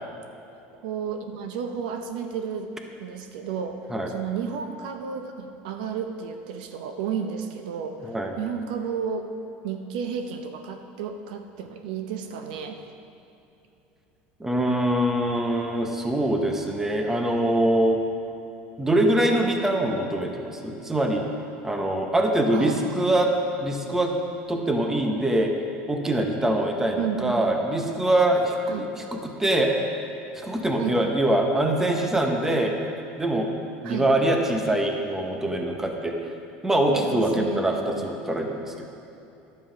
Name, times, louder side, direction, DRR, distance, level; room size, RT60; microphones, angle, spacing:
voice 1, 0.8-2.7 3.0-8.0 8.4-9.3 9.6-12.8 22.5-23.0 27.0-27.4 28.7-28.9 30.8-31.0 33.8-34.1 36.9-37.7 37.9-38.1, right 7 dB, 85° right, 6 dB, 0.8 m, -32 dB
voice 2, 14.4-18.0 18.8-21.2 21.6-23.3 23.6-24.1 24.5-25.5 25.9-29.7 30.3-32.8 33.2-33.5 33.8-36.2 36.6-38.9, right 1 dB, 10° right, 2 dB, 1.0 m, -23 dB
11.0 x 7.7 x 5.1 m, 2.9 s
supercardioid pair, 130°, 4 cm